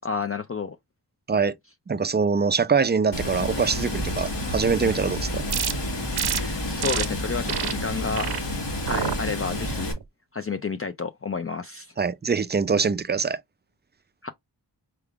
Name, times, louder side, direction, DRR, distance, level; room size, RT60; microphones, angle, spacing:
voice 1, 0.0-0.8 6.2-8.5 8.8-9.9 10.3-11.9 14.2-14.3, left 5 dB, 35° left, 0.5 m, -31 dB
voice 2, 1.9-5.5 12.0-13.4, right 5 dB, 25° right, 0.4 m, -23 dB
Water, 3.1-9.9, left 1 dB, 80° left, 1.7 m, -30 dB
sound 1, 5.5-5.7 6.2-6.4 6.8-7.1 7.5-7.7 8.1-8.4 8.9-9.2 9.7-10.0, right 8 dB, 65° right, 0.6 m, -28 dB
4.7 x 3.5 x 2.4 m
wide cardioid pair, 60°, 42 cm